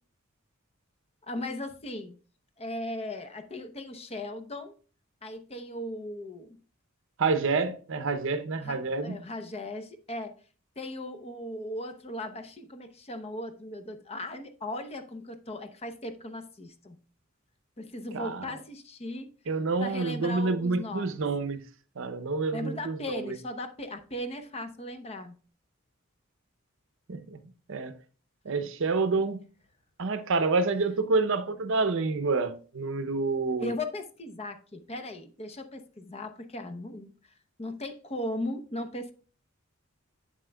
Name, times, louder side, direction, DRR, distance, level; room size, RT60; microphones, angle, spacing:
voice 1, 1.2-2.2 2.6-4.7 5.2-6.6 8.5-8.8 9.0-10.3 10.8-17.0 17.8-19.3 19.8-21.3 22.5-25.4 33.6-37.1 37.6-39.1, left 1 dB, 30° left, 0.7 m, -37 dB
voice 2, 7.2-9.2 18.1-18.5 19.5-21.6 22.0-23.4 27.1-27.4 27.7-27.9 28.4-29.4 30.0-33.7, right 3 dB, 70° right, 0.7 m, -28 dB
8.1 x 7.4 x 2.2 m
head